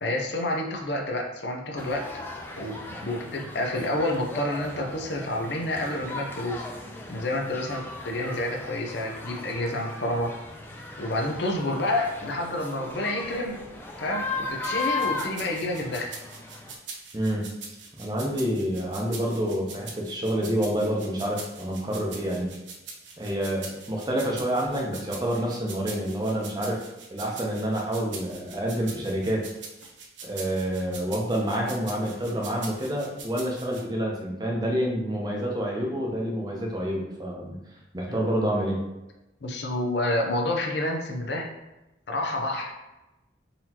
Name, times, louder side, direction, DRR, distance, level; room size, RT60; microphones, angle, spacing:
voice 1, 0.0-2.1 2.6-6.7 7.1-10.3 11.0-13.6 14.0-16.1 38.0-38.5 39.4-41.5 42.1-42.7, left 1 dB, 65° left, 2 dB, 0.6 m, -29 dB
sound 1, 1.8-16.7, left 3 dB, 10° left, 0.3 m, -37 dB
sound 2, 14.6-33.8, right 5 dB, 80° right, 0.7 m, -43 dB
voice 2, 17.1-17.5 18.0-22.5 23.2-26.8 27.1-29.4 30.2-37.6 37.9-38.8, equal, 20° right, -1 dB, 0.6 m, -28 dB
3.9 x 2.9 x 2.9 m, 0.99 s
head